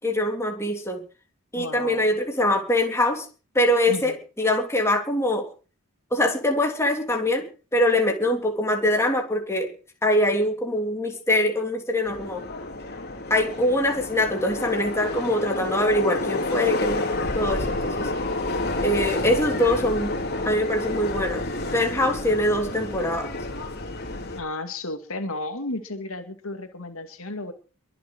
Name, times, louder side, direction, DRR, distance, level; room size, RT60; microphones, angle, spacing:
voice 1, 0.0-1.0 1.5-3.2 3.5-5.5 6.1-7.5 7.7-9.7 10.0-12.4 13.3-17.0 17.3-18.1 18.8-20.1 20.4-21.5 21.7-23.3, left 1 dB, 15° left, 2 dB, 3.3 m, -23 dB
voice 2, 1.5-2.0 3.9-4.1 22.1-22.2 24.4-27.5, left 2 dB, 80° left, 7 dB, 2.4 m, -33 dB
Subway metro underground, 12.0-24.4, left 2 dB, 50° left, 3.7 m, -29 dB
23.0 x 7.6 x 6.3 m, 0.37 s
head